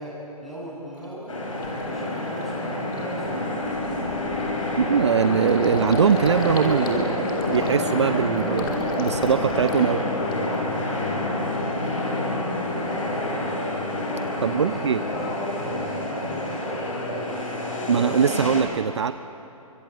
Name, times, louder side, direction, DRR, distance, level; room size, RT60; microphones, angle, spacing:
voice 1, 0.0-1.4 1.7-3.3 12.5-13.2 14.3-17.5, equal, ahead, -6 dB, 6.9 m, -40 dB
Gurgling, 1.0-1.1 1.6-1.9 2.3-2.4 2.7-10.7 11.1-11.7, left 3 dB, 40° left, 3.2 m, -34 dB
sound 1, 1.3-18.6, left 1 dB, 60° left, 7.2 m, -28 dB
voice 2, 4.8-10.0 14.4-15.0 17.9-19.1, right 7 dB, 50° right, 13 dB, 0.6 m, -22 dB
29.5 x 24.5 x 8.1 m, 2.9 s
figure-of-eight pair, 135°, 19 cm